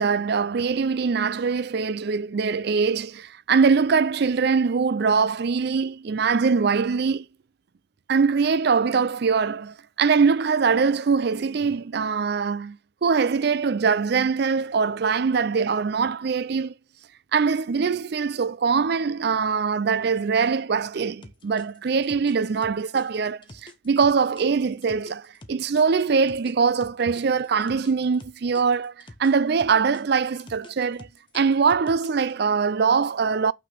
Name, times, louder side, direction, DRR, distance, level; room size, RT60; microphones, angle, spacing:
voice 1, 0.0-7.3 8.1-16.7 17.3-28.9 29.2-31.1 31.3-33.5, right 5 dB, 50° right, 0.4 m, -22 dB
sound 1, 21.2-25.8 26.3-29.3 29.6-32.3, left 2 dB, 25° left, 1.0 m, -46 dB
6.0 x 5.9 x 6.8 m
head